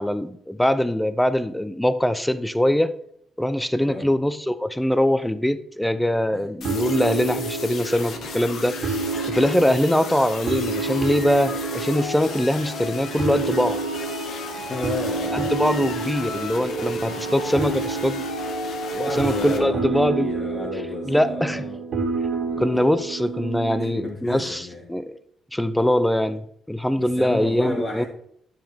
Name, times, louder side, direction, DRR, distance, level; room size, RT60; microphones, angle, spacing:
voice 1, 0.0-2.9 3.4-8.8 9.3-13.8 15.3-18.2 19.2-20.3 21.1-21.6 22.6-25.1 25.5-28.0, left 1 dB, 5° left, 13 dB, 0.6 m, -22 dB
sound 1, 6.6-19.6, left 5 dB, 65° left, 1.5 m, -35 dB
sound 2, 6.6-24.1, right 4 dB, 60° right, 1.9 m, -29 dB
voice 2, 14.6-15.9 16.3-16.7 17.0-17.3 18.9-21.8 22.5-22.8 23.8-24.8 27.0-28.1, left 2 dB, 35° left, -3 dB, 1.8 m, -33 dB
9.1 x 7.2 x 3.5 m, 0.69 s
cardioid pair, 90°, 0 cm